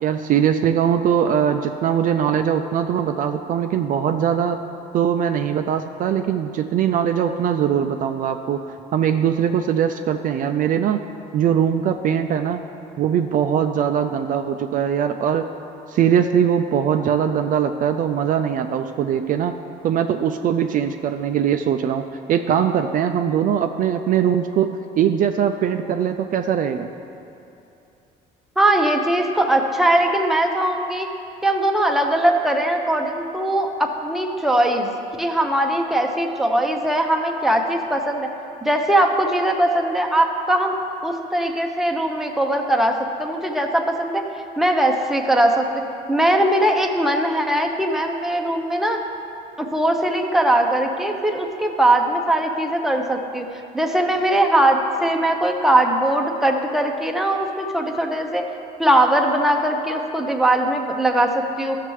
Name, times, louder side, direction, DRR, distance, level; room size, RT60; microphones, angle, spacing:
voice 1, 0.0-4.6 4.9-8.6 8.9-11.0 11.3-12.6 13.0-15.5 15.9-19.6 19.8-22.0 22.3-26.9, right 8 dB, 55° right, 7 dB, 0.4 m, -21 dB
voice 2, 28.6-31.1 31.4-34.9 35.2-38.3 38.6-40.7 41.0-44.2 44.6-45.6 46.1-49.0 49.6-53.4 53.7-58.4 58.8-61.8, right 1 dB, ahead, 2 dB, 0.7 m, -20 dB
13.5 x 6.6 x 3.1 m, 2.8 s
cardioid pair, 110°, 17 cm